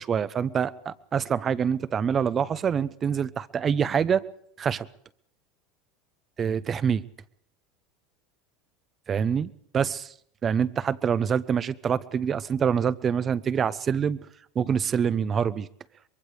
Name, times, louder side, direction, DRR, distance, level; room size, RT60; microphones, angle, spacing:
voice 1, 0.0-4.2 4.6-4.9 6.4-7.0 9.1-10.1 10.4-14.2 14.5-15.7, right 7 dB, 30° right, 16 dB, 0.9 m, -26 dB
24.0 x 22.0 x 5.0 m, 0.68 s
hypercardioid pair, 100°, 0 cm